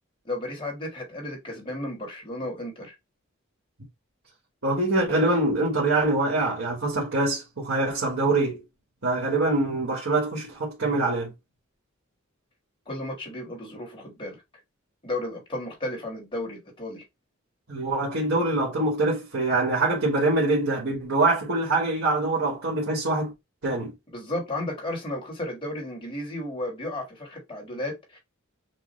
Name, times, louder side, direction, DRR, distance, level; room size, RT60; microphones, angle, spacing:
voice 1, 0.2-2.9 12.8-14.4 15.0-17.0 24.1-28.2, left 1 dB, 25° left, 1.7 m, -33 dB
voice 2, 4.6-8.6 9.0-11.3 17.7-23.3 23.6-23.9, right 2 dB, 65° right, 1.5 m, -24 dB
6.1 x 2.3 x 3.1 m
head